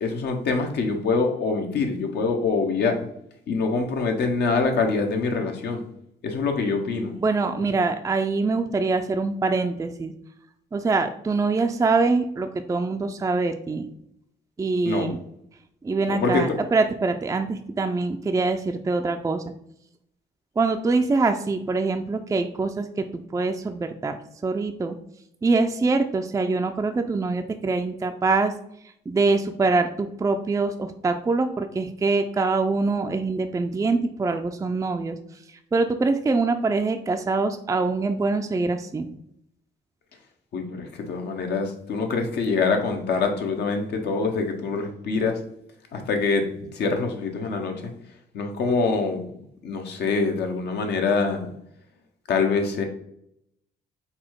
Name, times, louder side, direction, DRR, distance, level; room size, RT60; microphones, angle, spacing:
voice 1, 0.0-3.0 3.5-5.8 6.2-7.1 7.5-7.6 14.8-15.2 16.0-16.4 40.5-45.4 45.9-47.9 48.3-49.3 49.6-51.5 52.3-52.8, left 4 dB, 70° left, 4 dB, 0.9 m, -25 dB
voice 2, 7.2-10.1 10.7-13.9 14.6-15.2 15.8-19.4 20.6-25.0 25.4-28.5 29.1-35.2 35.5-39.1, right 3 dB, 20° right, 6 dB, 0.3 m, -24 dB
4.1 x 2.2 x 4.5 m, 0.73 s
supercardioid pair, 70°, 18 cm